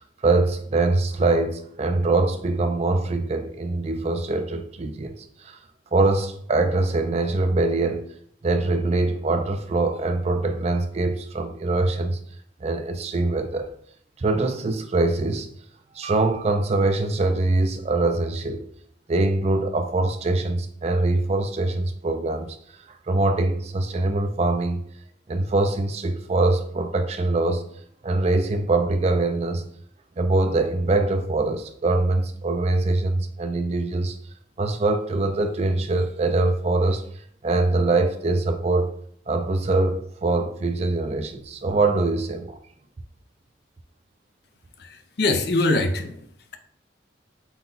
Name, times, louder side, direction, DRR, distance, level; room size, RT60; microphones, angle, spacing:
voice 1, 0.0-5.1 5.4-5.6 5.9-8.1 8.4-12.2 12.6-13.7 14.2-15.5 15.9-18.6 19.1-22.6 23.1-24.8 25.3-27.6 28.0-29.6 30.2-34.1 34.6-37.0 37.4-39.0 39.3-42.6, right 2 dB, 35° right, 0.4 m, -23 dB
voice 2, 44.8-46.3, left 2 dB, 60° left, 0.5 m, -23 dB
5.6 x 2.2 x 3.9 m
head